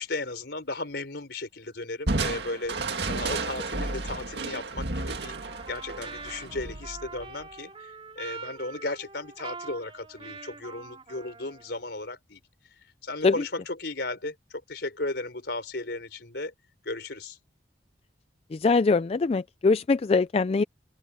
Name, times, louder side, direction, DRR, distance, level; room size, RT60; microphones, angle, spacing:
voice 1, 0.0-2.8 3.1-12.4 13.0-16.5 16.8-17.4, left 2 dB, 60° left, 4.9 m, -35 dB
Crushing, 2.1-7.5, right 3 dB, 65° right, 2.2 m, -32 dB
Trumpet, 5.2-11.8, right 4 dB, 30° right, 3.5 m, -44 dB
voice 2, 18.5-20.6, left 4 dB, 35° left, 0.3 m, -22 dB
open air
head